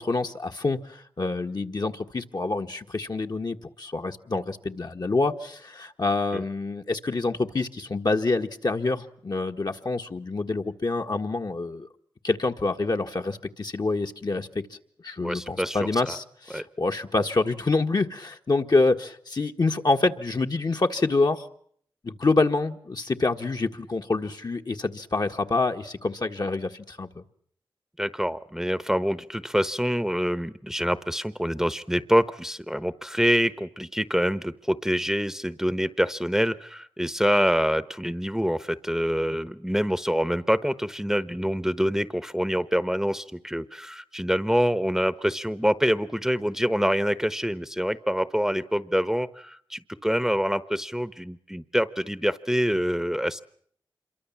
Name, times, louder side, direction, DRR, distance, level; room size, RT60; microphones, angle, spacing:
voice 1, 0.0-11.9 12.2-14.8 15.0-21.5 22.0-27.2, left 3 dB, 45° left, 4 dB, 1.7 m, -27 dB
voice 2, 15.2-15.8 16.1-16.2 16.5-16.6 28.0-53.4, equal, 5° right, 15 dB, 1.0 m, -26 dB
26.5 x 23.5 x 7.4 m, 0.63 s
cardioid pair, 50°, 9 cm